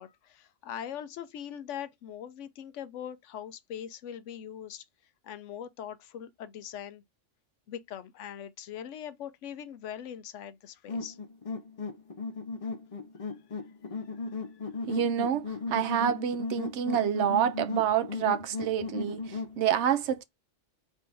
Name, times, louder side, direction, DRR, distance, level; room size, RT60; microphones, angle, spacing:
voice 1, 0.0-4.8 5.2-7.0 7.7-11.2, left 9 dB, 75° left, 0.9 m, -41 dB
sound 1, 10.9-19.6, left 4 dB, 35° left, 0.6 m, -36 dB
voice 2, 14.9-15.4 15.7-20.2, right 9 dB, 70° right, 0.8 m, -27 dB
4.5 x 2.6 x 3.4 m
omnidirectional pair, 1.3 m